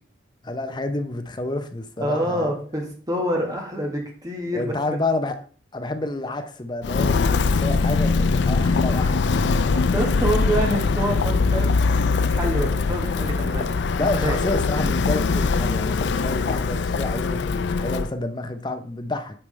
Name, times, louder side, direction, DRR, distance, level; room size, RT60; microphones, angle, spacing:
voice 1, 0.4-2.5 4.5-5.4 5.7-9.8 14.0-19.4, left 2 dB, 25° left, 8 dB, 0.7 m, -29 dB
voice 2, 2.0-4.7 9.7-11.8 12.3-13.7 14.2-14.4, right 1 dB, 20° right, 0 dB, 1.6 m, -26 dB
Walk footsteps, 6.8-18.1, left 4 dB, 80° left, 0.4 m, -22 dB
8.8 x 4.8 x 3.2 m, 0.42 s
head